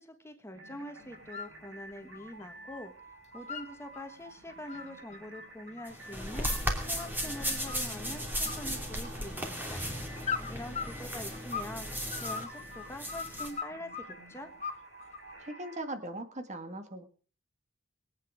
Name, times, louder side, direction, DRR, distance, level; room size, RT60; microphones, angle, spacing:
voice 1, 0.0-6.5 6.9-9.8 10.5-11.9 12.2-14.5, left 1 dB, 15° left, 6 dB, 1.4 m, -44 dB
sound 1, 0.5-15.8, right 1 dB, 70° right, 4.7 m, -51 dB
sound 2, 1.1-1.5 1.9-2.8 3.1-4.0 4.5-7.2 7.7-8.1 8.4-9.4 10.2-11.8 12.1-14.1 14.6-15.3, left 6 dB, 35° left, 1.5 m, -39 dB
sound 3, 5.9-13.5, equal, 10° right, 2.9 m, -36 dB
voice 2, 15.4-17.0, right 1 dB, 35° right, 7 dB, 1.8 m, -39 dB
21.5 x 9.1 x 5.0 m, 0.41 s
head